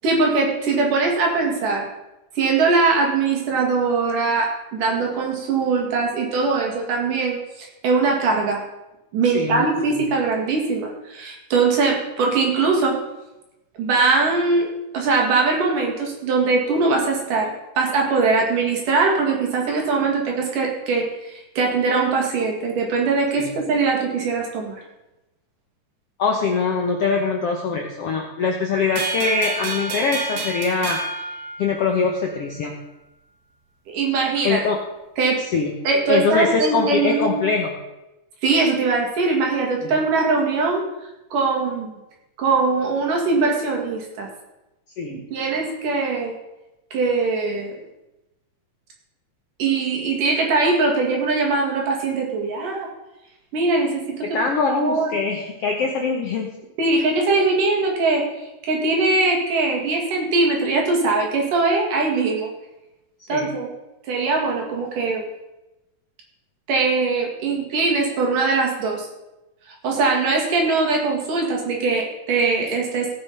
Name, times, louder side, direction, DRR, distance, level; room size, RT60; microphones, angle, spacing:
voice 1, 0.0-1.9 2.4-8.6 9.1-13.0 13.8-14.7 14.9-24.8 33.9-34.7 35.2-35.4 35.8-37.3 38.4-40.8 41.3-41.9 42.4-44.3 45.1-46.3 46.9-47.8 49.6-52.9 53.5-54.4 54.7-55.2 56.8-58.2 58.6-62.5 63.3-63.7 64.1-65.3 66.7-69.1 69.8-73.1, right 3 dB, 70° right, 0 dB, 3.6 m, -21 dB
voice 2, 9.3-10.0 23.3-23.5 26.2-31.0 31.6-32.7 34.4-34.8 35.5-35.7 36.1-37.7 39.8-39.9 45.0-45.2 54.3-56.5 63.3-63.5, left 4 dB, 65° left, 1 dB, 1.5 m, -23 dB
sound 1, 29.0-32.2, right 3 dB, 90° right, 3.4 m, -29 dB
17.0 x 6.1 x 5.4 m, 0.96 s
omnidirectional pair, 4.0 m